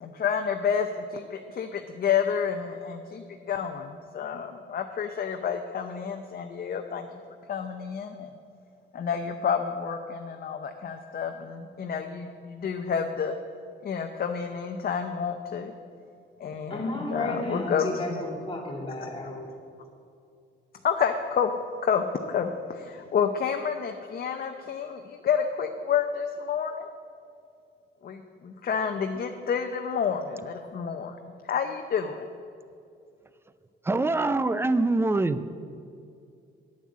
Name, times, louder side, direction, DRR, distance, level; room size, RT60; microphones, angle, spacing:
voice 1, 0.0-7.1 7.5-8.3 8.9-13.3 13.8-15.7 16.4-18.2 20.8-21.5 21.8-26.9 28.0-31.1 31.5-32.3, left 7 dB, 50° left, 5 dB, 0.7 m, -29 dB
voice 2, 16.7-19.5, left 1 dB, 25° left, 0 dB, 2.7 m, -33 dB
voice 3, 33.8-35.5, right 2 dB, 10° right, 13 dB, 0.5 m, -24 dB
9.2 x 8.9 x 7.5 m, 2.4 s
cardioid pair, 90°, 20 cm